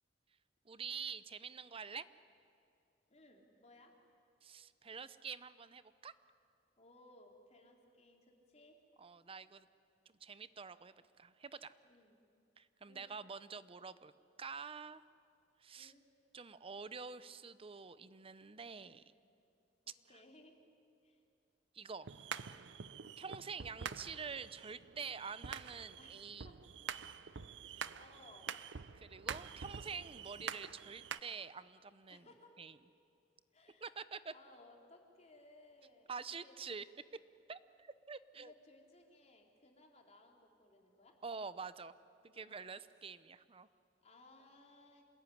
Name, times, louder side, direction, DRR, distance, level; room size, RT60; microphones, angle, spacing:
voice 1, 0.7-2.1 4.4-6.1 9.0-9.7 10.2-11.7 12.6-14.1 14.4-15.0 15.6-15.9 16.3-19.0 21.7-22.1 23.2-26.5 27.7-27.9 28.9-32.3 32.6-32.7 33.8-34.3 36.1-36.8 37.5-38.5 41.2-41.9 42.2-43.7, right 5 dB, 30° right, 15 dB, 0.7 m, -47 dB
voice 2, 3.1-4.0 6.8-8.8 11.8-12.2 12.8-13.1 15.8-16.1 19.8-20.6 21.0-21.2 26.0-26.6 27.6-28.5 32.1-32.6 33.5-33.9 34.3-36.6 38.3-41.2 42.3-42.6 44.0-45.1, left 2 dB, 40° left, 1 dB, 3.5 m, -62 dB
sound 1, 22.1-31.2, right 7 dB, 75° right, 0.7 m, -47 dB
27.0 x 20.0 x 10.0 m, 2.5 s
head